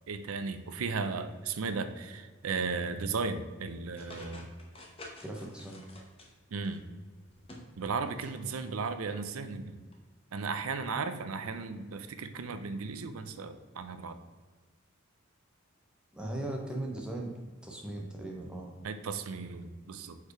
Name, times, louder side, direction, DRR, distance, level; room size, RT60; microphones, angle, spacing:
voice 1, 0.1-4.5 6.5-6.8 7.8-9.8 10.3-14.2 18.8-20.2, right 4 dB, 80° right, 9 dB, 0.5 m, -35 dB
sound 1, 4.0-6.8 7.2-8.4 8.6-8.7 9.9-10.0, left 1 dB, 25° left, 0.8 m, -50 dB
voice 2, 5.2-5.8 16.1-17.3 17.6-18.7, right 1 dB, 5° right, -1 dB, 0.8 m, -38 dB
4.8 x 4.5 x 4.8 m, 1.4 s
head